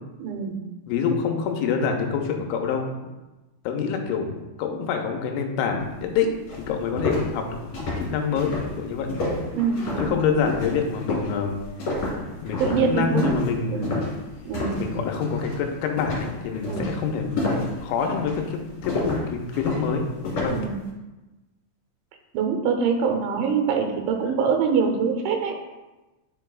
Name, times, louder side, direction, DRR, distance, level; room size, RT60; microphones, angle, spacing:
voice 1, 0.2-0.6 9.5-10.1 12.6-13.4 13.7-13.9 14.5-14.8 16.7-16.9 20.5-20.8 22.3-25.5, right 6 dB, 80° right, 4 dB, 3.1 m, -24 dB
voice 2, 0.9-2.9 3.6-6.3 6.7-7.5 7.8-9.1 10.0-11.6 12.4-13.9 14.8-17.5 17.8-20.6, left 6 dB, 90° left, 3 dB, 3.1 m, -26 dB
sound 1, 6.0-6.1 6.5-14.9 15.2-15.6 16.0-20.7, left 2 dB, 45° left, 2.9 m, -29 dB
10.0 x 4.6 x 2.3 m, 1.1 s
omnidirectional pair, 5.4 m